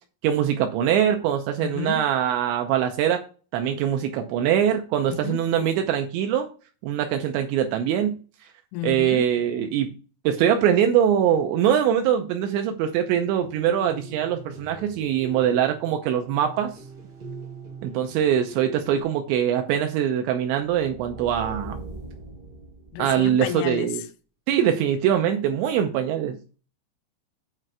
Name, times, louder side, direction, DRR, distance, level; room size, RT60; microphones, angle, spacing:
voice 1, 0.2-3.2 3.5-6.5 6.8-8.2 8.8-9.9 10.2-16.7 17.8-21.8 23.0-24.0 24.5-26.4, right 9 dB, 85° right, 2.7 m, -23 dB
voice 2, 1.6-2.1 5.1-5.4 8.7-9.3 22.9-24.0, left 14 dB, 80° left, 2.9 m, -31 dB
sound 1, 13.1-19.0, right 3 dB, 65° right, 1.5 m, -42 dB
sound 2, 20.6-23.5, right 2 dB, 40° right, 0.7 m, -40 dB
9.2 x 3.3 x 6.1 m
omnidirectional pair, 5.7 m